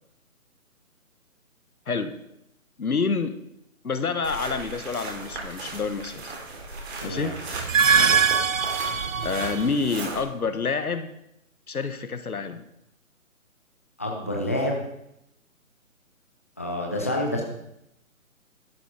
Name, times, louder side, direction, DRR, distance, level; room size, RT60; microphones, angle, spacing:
voice 1, 1.9-2.2 2.8-3.3 3.8-6.3 7.0-7.4 9.2-11.1 11.7-12.6, left 4 dB, 85° left, 10 dB, 1.6 m, -28 dB
sound 1, 4.2-10.2, right 3 dB, 45° right, 4.4 m, -37 dB
voice 2, 7.0-7.3 7.9-8.2 14.0-14.8 16.6-17.4, left 1 dB, 10° left, 0 dB, 0.6 m, -28 dB
sound 2, 7.5-9.8, right 6 dB, 65° right, 1.0 m, -22 dB
12.5 x 10.5 x 5.0 m, 0.82 s
hypercardioid pair, 160°, 43 cm